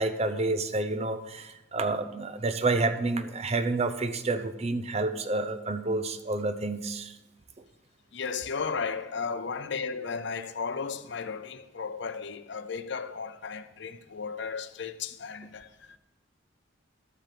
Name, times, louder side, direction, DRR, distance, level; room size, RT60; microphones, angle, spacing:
voice 1, 0.0-7.2, right 2 dB, 30° right, 0.6 m, -29 dB
voice 2, 8.1-16.0, left 5 dB, 60° left, 0.6 m, -35 dB
12.0 x 5.0 x 7.5 m
head